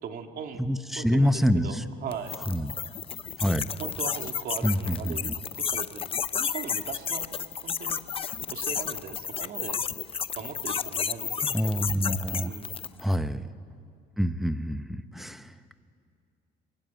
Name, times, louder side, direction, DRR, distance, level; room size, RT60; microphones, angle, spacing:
voice 1, 0.0-0.6 1.0-2.3 3.8-7.2 7.6-9.8 10.4-11.5 12.4-12.8, right 7 dB, 60° right, 5 dB, 2.1 m, -39 dB
voice 2, 0.6-1.8 2.5-2.7 3.4-3.6 4.6-5.3 11.4-12.5 13.0-13.4 14.2-15.5, equal, ahead, 10 dB, 1.0 m, -26 dB
sound 1, 2.1-13.0, left 7 dB, 35° left, 0.7 m, -32 dB
27.0 x 22.5 x 9.1 m, 2.4 s
cardioid pair, 110°, 17 cm